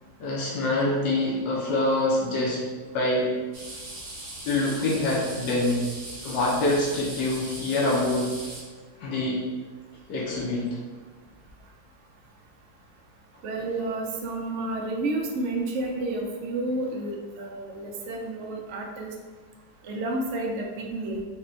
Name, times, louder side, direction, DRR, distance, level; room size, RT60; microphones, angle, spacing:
voice 1, 0.2-2.6 2.9-3.3 4.4-5.9 6.2-8.3 9.0-9.4 10.1-10.7, left 2 dB, 80° left, -5 dB, 1.4 m, -25 dB
sound 1, 3.5-8.6, right 2 dB, 35° right, 1.2 m, -39 dB
voice 2, 13.4-19.1 19.8-21.2, right 2 dB, 85° right, 0 dB, 0.6 m, -30 dB
4.1 x 2.2 x 3.6 m, 1.4 s
omnidirectional pair, 2.0 m